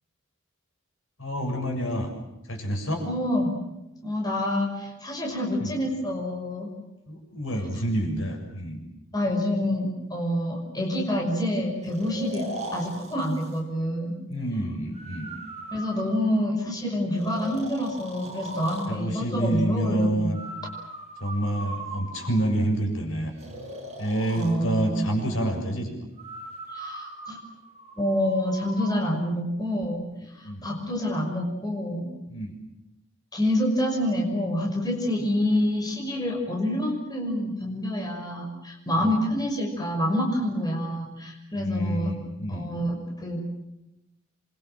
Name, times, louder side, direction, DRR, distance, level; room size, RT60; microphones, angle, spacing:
voice 1, 1.2-2.1 2.5-3.0 5.6-5.7 7.1-8.8 14.3-15.3 18.9-20.4 21.2-23.3 24.0-25.9 30.4-30.7 32.3-32.6 38.9-39.2 41.5-42.7, right 1 dB, 65° left, 3 dB, 7.2 m, -28 dB
voice 2, 3.0-3.5 4.0-6.7 9.1-12.4 12.7-14.2 15.7-20.4 24.4-25.0 26.7-27.4 28.0-30.0 30.6-32.1 33.3-42.1 42.5-43.4, left 1 dB, 20° left, 0 dB, 5.8 m, -27 dB
Breathing, 11.8-13.6 14.9-16.6 17.2-19.0 20.3-22.6 23.4-24.5 26.2-29.0, right 1 dB, 30° right, 7.5 m, -39 dB
28.0 x 24.5 x 7.6 m, 0.90 s
head